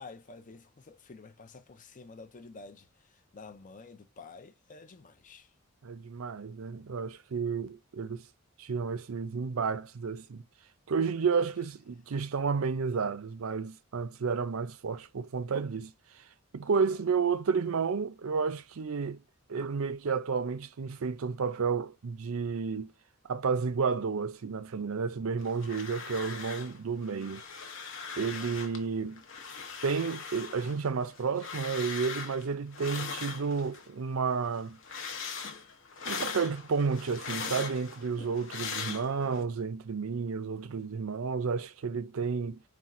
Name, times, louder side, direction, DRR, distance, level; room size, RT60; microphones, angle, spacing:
voice 1, 0.0-5.5 11.4-11.5 16.7-17.0 28.3-28.7, left 4 dB, 35° left, 0.5 m, -50 dB
voice 2, 5.8-8.2 8.6-10.4 10.9-16.2 16.5-19.2 19.5-22.9 23.3-27.4 28.2-29.2 29.8-34.8 36.1-42.6, right 5 dB, 70° right, 0.5 m, -31 dB
sound 1, 25.4-26.8 27.0-28.8 29.2-33.9 34.3-39.4, left 5 dB, 60° left, 0.8 m, -40 dB
4.3 x 2.4 x 3.7 m
head